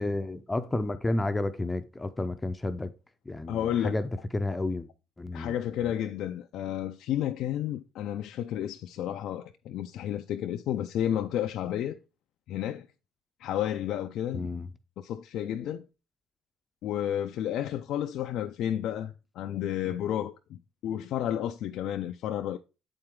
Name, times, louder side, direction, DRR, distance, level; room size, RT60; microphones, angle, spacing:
voice 1, 0.0-2.9 3.3-4.9 5.2-5.5 5.8-5.9 14.3-14.7, left 2 dB, 15° left, 0.6 m, -31 dB
voice 2, 3.5-4.0 5.3-12.0 12.5-12.9 13.4-14.7 15.0-15.9 16.8-22.6, left 11 dB, 70° left, 0.4 m, -31 dB
7.8 x 4.4 x 3.7 m
supercardioid pair, 75°, 0 cm